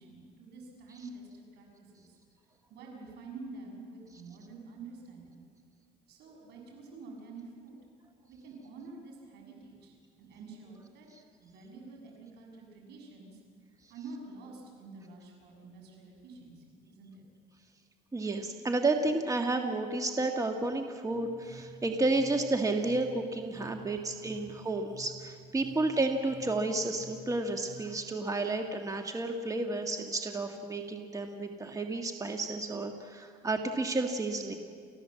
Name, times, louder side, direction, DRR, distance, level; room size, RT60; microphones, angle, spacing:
voice 1, 0.0-2.2 2.7-5.4 6.1-7.8 8.3-11.1 11.4-13.4 13.9-17.2 23.7-24.0, right 3 dB, 80° right, 0 dB, 7.1 m, -48 dB
voice 2, 18.1-34.6, right 2 dB, 20° right, 4 dB, 1.6 m, -31 dB
sound 1, 21.1-27.8, right 2 dB, ahead, 3.7 m, -51 dB
29.5 x 15.5 x 7.6 m, 2.1 s
cardioid pair, 110°, 17 cm